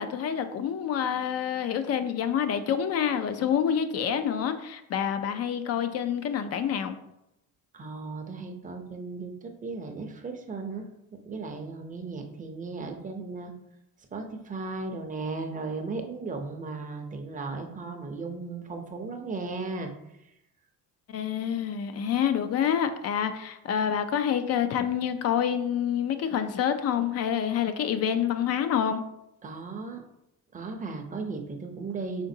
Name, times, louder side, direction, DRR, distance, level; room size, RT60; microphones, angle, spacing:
voice 1, 0.0-6.9 21.1-29.0, left 8 dB, 45° left, 10 dB, 0.4 m, -27 dB
voice 2, 7.7-10.9 11.3-13.5 14.1-19.9 29.4-30.0 30.5-32.3, right 3 dB, 25° right, 3 dB, 0.6 m, -36 dB
5.1 x 3.6 x 2.7 m, 0.85 s
cardioid pair, 115°, 35 cm